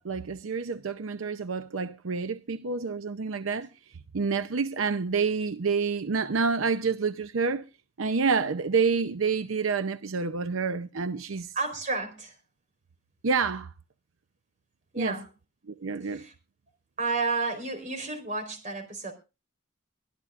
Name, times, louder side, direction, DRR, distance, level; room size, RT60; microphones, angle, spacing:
voice 1, 0.0-3.7 4.1-7.6 8.0-11.5 13.2-13.7 15.0-15.2 15.7-16.3, right 5 dB, 85° right, 0.7 m, -28 dB
voice 2, 11.5-12.3 14.9-15.3 16.1-16.3 17.0-19.1, right 3 dB, 40° right, 4.1 m, -31 dB
23.5 x 12.5 x 2.5 m
head